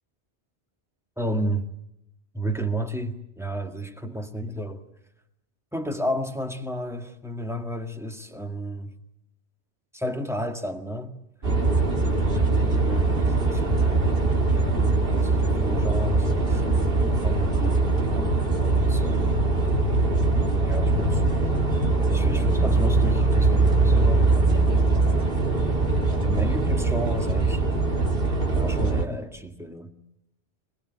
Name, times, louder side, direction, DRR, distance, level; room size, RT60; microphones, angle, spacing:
voice 1, 1.2-1.7 2.3-4.8 5.7-8.9 9.9-11.1 12.3-13.7 15.1-17.9 18.7-19.4 20.6-21.2 22.1-24.7 26.1-27.6 28.0-28.1 28.5-29.9, equal, ahead, 1.8 m, -32 dB
sound 1, 11.4-29.1, right 3 dB, 55° right, 2.5 m, -22 dB
24.5 x 21.0 x 9.3 m
omnidirectional pair, 1.2 m